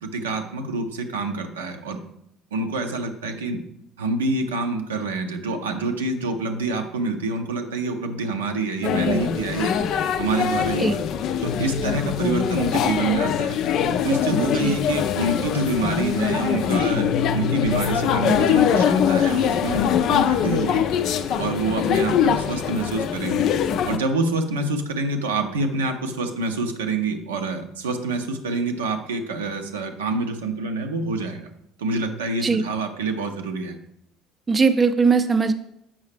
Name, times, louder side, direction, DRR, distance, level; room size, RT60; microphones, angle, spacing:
voice 1, 0.0-2.0 2.5-3.6 4.0-9.7 10.2-11.0 11.4-13.6 14.0-20.8 21.4-23.4 23.8-31.5 31.8-33.8, right 3 dB, 75° right, 5 dB, 0.6 m, -26 dB
sound 1, 8.8-24.0, left 8 dB, 50° left, 0.4 m, -22 dB
voice 2, 34.5-35.5, right 4 dB, 25° right, 8 dB, 0.5 m, -19 dB
7.3 x 5.5 x 3.3 m, 0.76 s
figure-of-eight pair, 55°, 0 cm